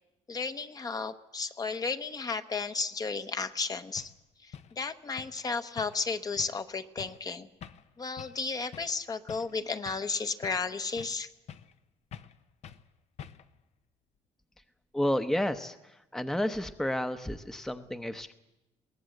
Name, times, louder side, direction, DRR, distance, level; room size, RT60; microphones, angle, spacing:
voice 1, 0.3-4.1 4.4-7.5 8.0-11.3, left 4 dB, 30° left, 8 dB, 1.0 m, -33 dB
sound 1, 3.5-3.6 4.0-4.2 4.5-4.8 5.2-5.5 5.8-6.1 6.4-6.6 7.0-7.2 7.6-7.9 8.2-8.4 8.7-9.0 9.3-10.1 10.4-11.2 11.5-11.8 12.1-12.4 12.6-12.8 13.2-13.6, left 8 dB, 65° left, 0.9 m, -47 dB
voice 2, 14.9-15.7 16.1-18.3, left 1 dB, 5° left, 9 dB, 0.8 m, -31 dB
22.0 x 18.0 x 7.8 m, 0.96 s
cardioid pair, 115°, 12 cm